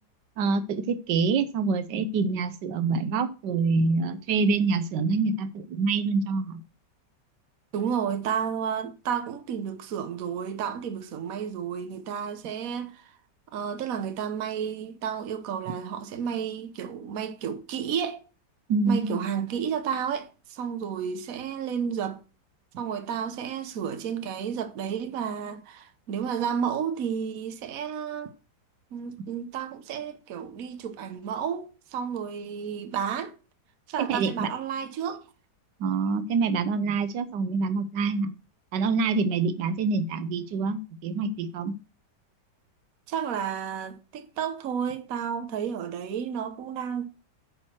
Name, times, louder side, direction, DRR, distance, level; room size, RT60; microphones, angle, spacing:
voice 1, 0.4-6.6 18.7-19.2 34.0-34.5 35.8-38.3 38.7-41.7, right 4 dB, 85° right, 1.4 m, -26 dB
voice 2, 7.7-13.1 13.5-18.2 18.9-22.2 22.8-28.3 28.9-33.3 33.9-35.2 43.1-47.1, right 7 dB, 55° right, 1.3 m, -31 dB
8.9 x 4.5 x 5.8 m
omnidirectional pair, 1.9 m